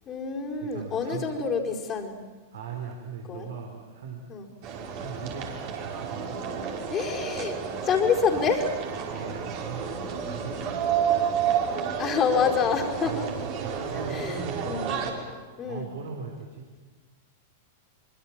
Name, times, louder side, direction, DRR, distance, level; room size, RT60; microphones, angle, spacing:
voice 1, 0.1-2.2 3.3-3.5 4.3-4.5 6.9-7.6 7.8-8.7 12.0-13.2 14.1-14.9 15.6-15.9, left 6 dB, 30° left, 0 dB, 4.7 m, -27 dB
voice 2, 0.6-1.2 2.5-4.2 4.6-6.4 9.1-10.9 13.1-16.8, right 5 dB, 65° right, 1 dB, 4.4 m, -39 dB
sound 1, 4.6-15.1, right 7 dB, 45° right, 5.5 m, -31 dB
25.5 x 25.5 x 7.5 m, 1.4 s
figure-of-eight pair, 95°, 0 cm